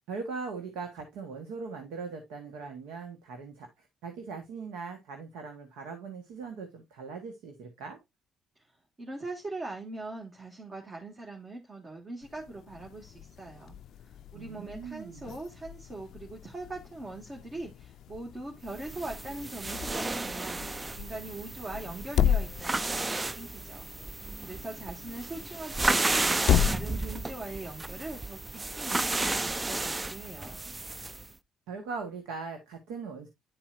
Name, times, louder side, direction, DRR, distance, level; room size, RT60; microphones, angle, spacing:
voice 1, 0.1-8.0 14.3-15.3 31.7-33.3, right 4 dB, 85° right, 1.2 m, -40 dB
voice 2, 9.0-13.8 14.3-20.6 20.9-23.9 24.4-30.6, right 2 dB, 35° right, 1.8 m, -41 dB
sound 1, 12.2-27.5, left 9 dB, 70° left, 0.3 m, -34 dB
sound 2, 18.7-31.3, right 2 dB, 20° right, 0.3 m, -33 dB
10.5 x 4.3 x 2.5 m
supercardioid pair, 65°, 0 cm